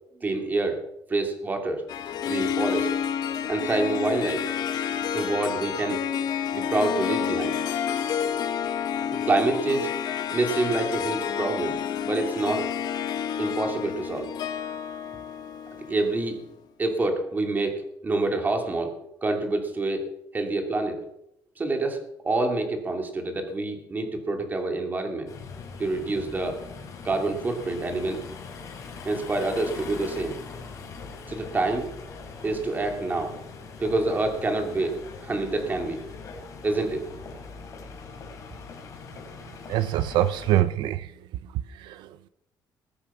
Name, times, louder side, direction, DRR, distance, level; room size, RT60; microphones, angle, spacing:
voice 1, 0.1-0.8 1.1-1.8 2.2-2.9 3.5-4.5 5.1-6.0 6.5-7.6 9.1-10.0 10.3-11.8 12.1-12.7 13.4-14.3 15.1-15.2 15.9-16.4 16.8-19.0 19.2-21.0 21.6-22.0 22.2-25.3 25.8-26.6 27.0-28.2 29.0-30.4 31.3-31.9 32.4-33.3 33.8-36.0 36.6-37.0, right 2 dB, 25° right, 2.8 m, -27 dB
Harp, 1.9-16.4, left 8 dB, 60° left, 1.2 m, -29 dB
sound 1, 25.3-40.6, left 4 dB, 45° left, 4.5 m, -41 dB
voice 2, 39.7-41.1 41.8-42.1, right 13 dB, 85° right, 0.6 m, -24 dB
20.5 x 8.7 x 6.2 m
cardioid pair, 140°, 8 cm